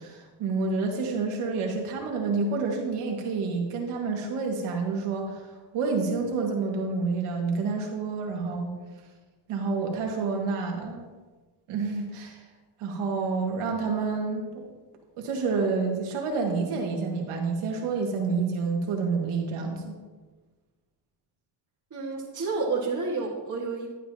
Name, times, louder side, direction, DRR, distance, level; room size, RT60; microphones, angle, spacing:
voice 1, 0.0-8.7 9.5-11.1 11.7-12.4 12.8-14.5 15.2-20.0, right 4 dB, 80° right, 1 dB, 2.1 m, -28 dB
voice 2, 21.9-23.9, right 4 dB, 35° right, -7 dB, 2.0 m, -30 dB
12.0 x 8.5 x 2.9 m, 1.3 s
cardioid pair, 105°, 49 cm